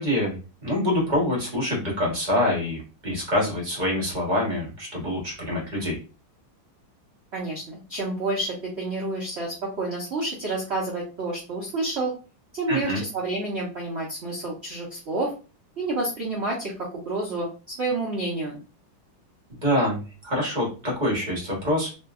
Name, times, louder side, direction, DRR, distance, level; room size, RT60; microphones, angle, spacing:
voice 1, 0.0-6.0 12.7-13.0 19.6-21.9, left 1 dB, 30° right, -2 dB, 0.9 m, -25 dB
voice 2, 7.3-12.1 12.5-15.3 15.8-17.5 17.8-18.6, right 2 dB, 60° right, -4 dB, 0.7 m, -29 dB
2.9 x 2.7 x 2.3 m, 0.33 s
omnidirectional pair, 2.2 m